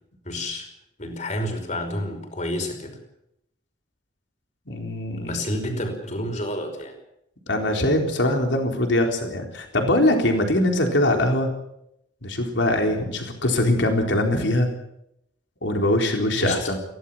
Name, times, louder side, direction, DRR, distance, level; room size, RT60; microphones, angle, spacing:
voice 1, 0.3-0.7 1.0-3.0 5.2-7.0 16.3-16.6, left 1 dB, 40° left, 4 dB, 5.5 m, -29 dB
voice 2, 4.7-5.4 7.5-11.5 12.2-14.7 15.6-16.8, left 1 dB, 80° left, 3 dB, 4.0 m, -22 dB
23.0 x 17.0 x 7.5 m, 0.78 s
head